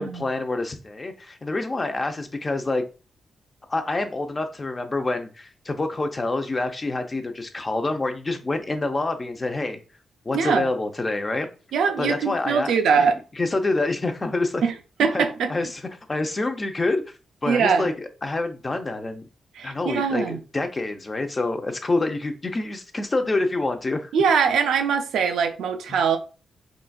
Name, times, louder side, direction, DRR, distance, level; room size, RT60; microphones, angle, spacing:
voice 1, 0.0-2.8 3.7-9.8 10.2-11.5 12.0-13.1 13.4-14.6 15.1-15.2 15.5-15.8 16.1-17.0 17.4-17.9 18.2-19.3 19.6-24.1 25.9-26.0, left 2 dB, 30° left, 0.5 m, -27 dB
voice 2, 10.3-10.7 11.7-13.1 14.6-14.7 15.0-15.5 17.5-17.9 19.6-20.4 24.1-26.2, right 6 dB, 85° right, 0.4 m, -22 dB
3.8 x 2.4 x 2.2 m
cardioid pair, 70°, 0 cm